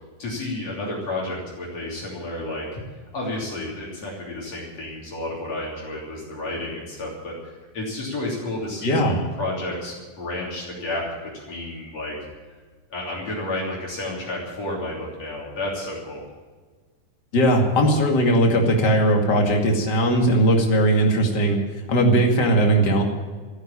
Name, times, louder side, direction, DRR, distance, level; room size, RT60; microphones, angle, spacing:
voice 1, 0.2-2.8 3.1-11.0 11.3-12.2 12.9-16.2, left 2 dB, 55° left, -4 dB, 4.3 m, -31 dB
voice 2, 8.8-9.2 17.3-21.6 21.9-23.0, right 1 dB, 35° left, 1 dB, 2.7 m, -19 dB
14.5 x 10.0 x 8.8 m, 1.4 s
omnidirectional pair, 3.6 m